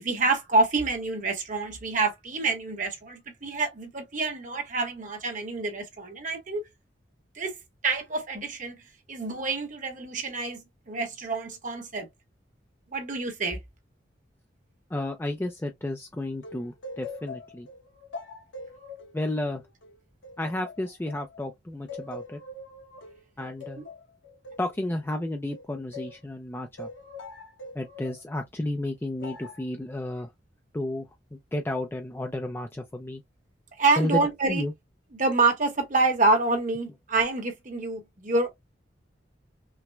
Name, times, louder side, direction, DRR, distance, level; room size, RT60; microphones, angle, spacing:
voice 1, 0.0-6.6 7.4-7.5 7.8-8.8 9.1-12.1 12.9-13.6 23.8-23.9 33.8-34.6 35.1-38.5, right 3 dB, 45° right, 1.1 m, -27 dB
voice 2, 14.9-17.7 19.1-19.6 20.4-22.4 23.4-23.8 24.6-26.9 27.7-30.3 30.7-33.2 34.0-34.7, left 1 dB, 10° left, 0.4 m, -32 dB
sound 1, 16.4-21.4 21.9-26.2 26.8-28.2 29.2-29.7, left 2 dB, 90° left, 0.8 m, -43 dB
5.7 x 2.1 x 2.2 m
head